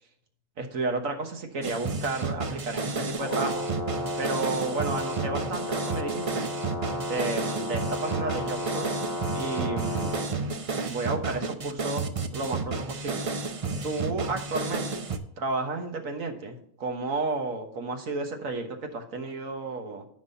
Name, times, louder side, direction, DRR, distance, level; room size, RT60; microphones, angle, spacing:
voice 1, 0.6-3.7 4.2-6.5 7.1-8.9 9.3-10.2 10.9-13.3 13.8-15.0 15.4-20.1, right 3 dB, 85° right, 4 dB, 1.7 m, -32 dB
sound 1, 1.6-15.2, right 4 dB, 35° right, 0.5 m, -31 dB
Brass instrument, 3.1-10.3, left 1 dB, 85° left, 3.3 m, -33 dB
14.0 x 5.5 x 2.8 m, 0.68 s
omnidirectional pair, 1.4 m